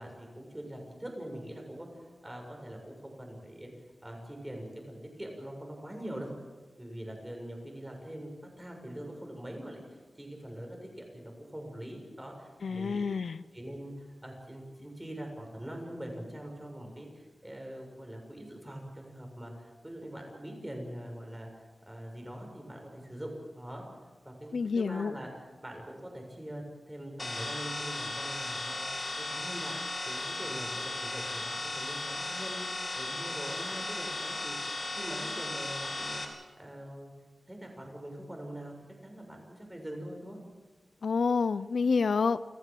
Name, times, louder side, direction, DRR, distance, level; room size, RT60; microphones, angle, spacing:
voice 1, 0.0-3.7 4.0-6.3 6.8-8.3 8.6-13.1 13.5-23.8 24.3-29.8 30.1-34.6 35.0-36.2 36.6-37.1 37.5-38.7 39.0-40.4, right 1 dB, 15° right, 2 dB, 6.8 m, -43 dB
voice 2, 12.6-13.4 24.5-25.1 41.0-42.4, left 5 dB, 75° left, 15 dB, 0.6 m, -28 dB
sound 1, 27.2-36.2, left 2 dB, 35° left, 4.0 m, -36 dB
29.5 x 15.0 x 7.6 m, 1.3 s
wide cardioid pair, 100°, 0 cm